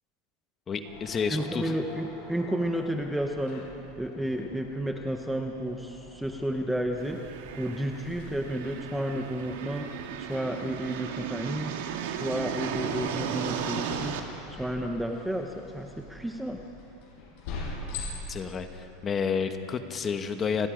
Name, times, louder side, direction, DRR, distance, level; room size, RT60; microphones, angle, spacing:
voice 1, 0.7-1.8 18.3-20.7, left 6 dB, 20° left, 7 dB, 1.1 m, -30 dB
sound 1, 0.8-19.8, left 3 dB, 55° left, 7.3 m, -45 dB
voice 2, 1.3-3.6 4.0-7.2 7.5-11.7 12.0-14.2 14.5-16.6, right 1 dB, 5° right, 3 dB, 0.9 m, -32 dB
sound 2, 7.0-14.2, right 8 dB, 80° right, 2.0 m, -35 dB
29.5 x 21.0 x 5.1 m, 2.9 s
supercardioid pair, 165°, 0 cm